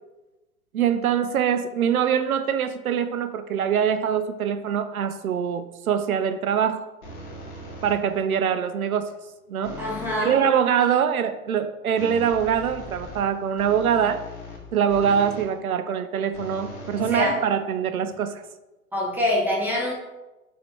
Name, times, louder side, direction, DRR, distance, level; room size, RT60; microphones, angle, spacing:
voice 1, 0.7-6.9 7.8-9.1 9.5-9.8 10.2-14.2 14.7-18.4, right 8 dB, 75° right, 0.6 m, -23 dB
sound 1, 7.0-8.2 9.6-10.3 12.0-15.6 16.3-17.8, left 1 dB, 75° left, 2.1 m, -39 dB
voice 2, 9.8-10.4 17.0-17.4 18.9-19.9, left 1 dB, 5° right, 2.0 m, -25 dB
7.4 x 4.3 x 3.6 m
figure-of-eight pair, 95°, 44 cm